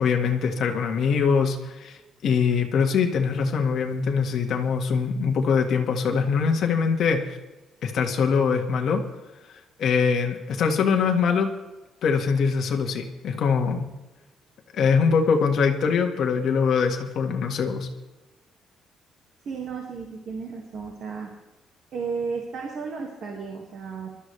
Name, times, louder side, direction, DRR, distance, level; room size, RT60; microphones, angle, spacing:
voice 1, 0.0-7.2 7.8-9.0 9.5-11.5 12.0-13.9 14.7-17.9, left 6 dB, 50° left, 2 dB, 1.7 m, -23 dB
voice 2, 19.4-21.3 21.9-24.1, right 5 dB, 45° right, 1 dB, 2.0 m, -33 dB
22.0 x 13.0 x 3.3 m, 1.1 s
cardioid pair, 180°, 0 cm